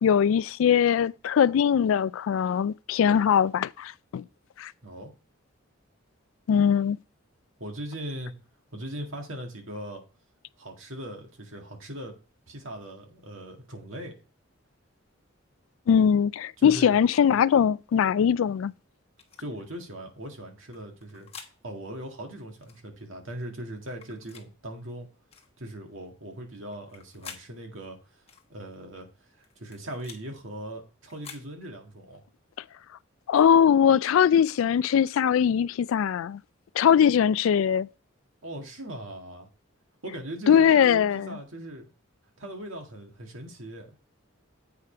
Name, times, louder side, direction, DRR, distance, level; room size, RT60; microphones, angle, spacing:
voice 1, 0.0-4.2 4.6-4.7 6.5-7.0 15.9-18.7 33.3-36.4 36.7-37.9 40.5-41.4, left 8 dB, 75° left, 0.3 m, -21 dB
voice 2, 4.8-5.1 7.6-8.3 8.7-10.0 10.6-12.2 12.5-14.2 16.6-17.0 19.4-21.3 21.6-25.1 25.6-28.0 28.5-29.1 29.4-32.2 38.4-39.5 40.0-41.9 42.4-43.9, right 1 dB, 70° right, 1.9 m, -39 dB
sound 1, 19.2-19.4 20.7-21.5 22.6-22.8 23.9-24.5 25.3-25.5 26.7-27.5 28.3-28.5 29.4-30.2 31.0-31.5, left 6 dB, 30° left, 1.2 m, -47 dB
8.2 x 5.0 x 4.4 m
head